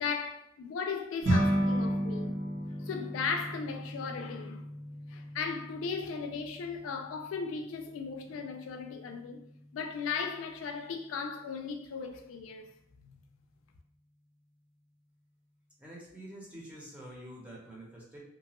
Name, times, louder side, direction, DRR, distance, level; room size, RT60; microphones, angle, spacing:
voice 1, 0.0-2.4 2.8-4.6 5.1-9.4 9.7-12.7 13.0-13.2, left 5 dB, 85° left, 0.3 m, -37 dB
sound 1, 1.2-10.7, equal, 45° right, 1.4 m, -35 dB
voice 2, 15.8-18.2, right 1 dB, 5° right, 0.7 m, -47 dB
2.8 x 2.2 x 2.9 m
head